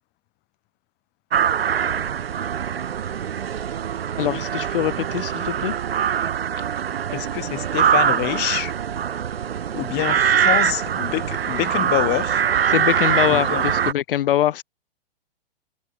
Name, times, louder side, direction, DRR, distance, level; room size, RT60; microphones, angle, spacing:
sound 1, 1.3-13.9, right 8 dB, 70° right, 3.8 m, -23 dB
sound 2, 2.6-8.4, right 14 dB, 55° right, 6.4 m, -39 dB
voice 1, 4.2-5.7 12.7-14.6, left 12 dB, 60° left, 1.5 m, -23 dB
voice 2, 7.1-8.7 9.7-12.4 13.3-13.6, left 22 dB, 30° left, 1.9 m, -26 dB
hypercardioid pair, 115°, 31 cm